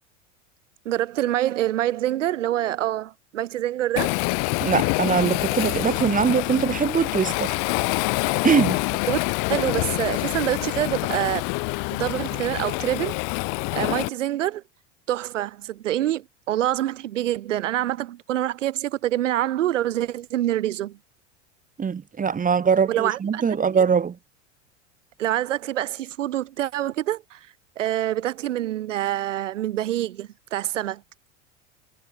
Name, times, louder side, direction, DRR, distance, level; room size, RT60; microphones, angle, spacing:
voice 1, 0.8-4.2 9.1-9.2 9.5-11.5 11.9-13.2 13.7-14.6 15.1-21.0 22.9-23.4 23.7-23.8 25.2-27.5 27.8-31.0, right 13 dB, 80° right, 4.1 m, -26 dB
Waves surf, 4.0-14.1, left 36 dB, 60° left, 5.5 m, -26 dB
voice 2, 4.6-7.6 8.4-8.8 21.8-24.2, right 6 dB, 20° right, 1.7 m, -22 dB
hypercardioid pair, 95°, 37 cm